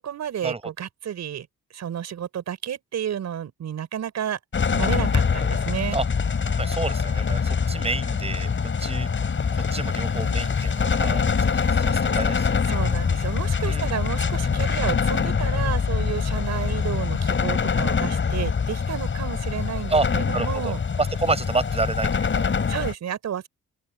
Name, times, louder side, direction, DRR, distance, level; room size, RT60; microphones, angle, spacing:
voice 1, 0.0-1.5 1.7-4.4 4.7-6.0 12.7-20.8 22.7-23.5, right 9 dB, 65° right, 6.4 m, -31 dB
sound 1, 4.5-22.9, left 5 dB, 40° left, 6.6 m, -24 dB
voice 2, 6.5-9.1 9.5-12.5 13.6-14.0 19.9-22.5, right 3 dB, 20° right, 5.6 m, -29 dB
open air
cardioid pair, 90°, 30 cm